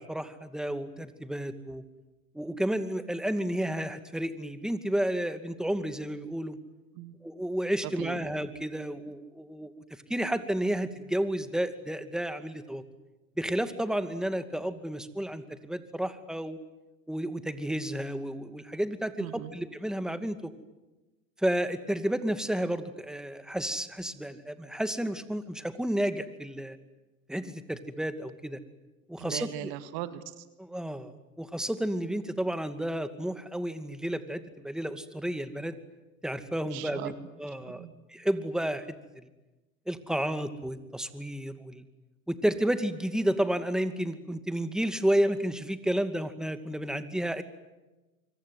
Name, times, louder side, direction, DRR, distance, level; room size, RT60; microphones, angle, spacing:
voice 1, 0.0-1.8 2.3-6.6 7.2-9.8 10.1-12.8 13.4-16.6 17.1-20.5 21.4-26.8 27.3-28.6 29.1-29.7 30.6-35.7 36.2-38.8 39.9-41.8 42.3-47.4, right 1 dB, ahead, 10 dB, 2.4 m, -31 dB
voice 2, 7.8-8.2 19.2-19.5 29.2-30.4 36.7-37.3 37.6-37.9, right 13 dB, 65° right, 11 dB, 2.0 m, -39 dB
25.0 x 25.0 x 9.4 m, 1.1 s
hypercardioid pair, 75°, 40 cm